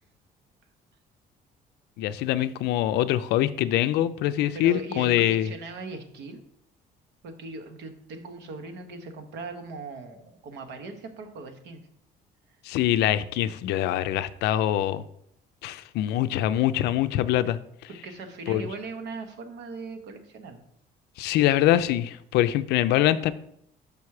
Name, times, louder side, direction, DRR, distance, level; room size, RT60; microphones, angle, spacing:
voice 1, 2.0-5.5 12.6-15.0 15.6-17.9 18.5-18.6 21.2-23.3, left 13 dB, 80° left, 12 dB, 0.4 m, -24 dB
voice 2, 4.5-6.4 7.2-11.8 17.9-20.6, right 3 dB, 80° right, 6 dB, 1.1 m, -39 dB
5.8 x 5.1 x 4.7 m, 0.72 s
cardioid pair, 110°, 17 cm